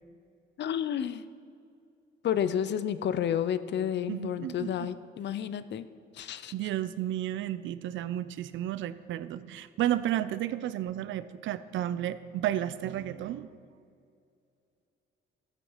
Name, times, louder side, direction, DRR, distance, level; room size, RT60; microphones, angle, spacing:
voice 1, 0.6-1.2 2.2-5.9 6.1-6.5, left 9 dB, 60° left, 14 dB, 0.6 m, -30 dB
voice 2, 4.1-4.9 6.5-13.5, right 12 dB, 75° right, 14 dB, 0.6 m, -32 dB
13.0 x 8.4 x 5.6 m, 2.4 s
cardioid pair, 90°, 20 cm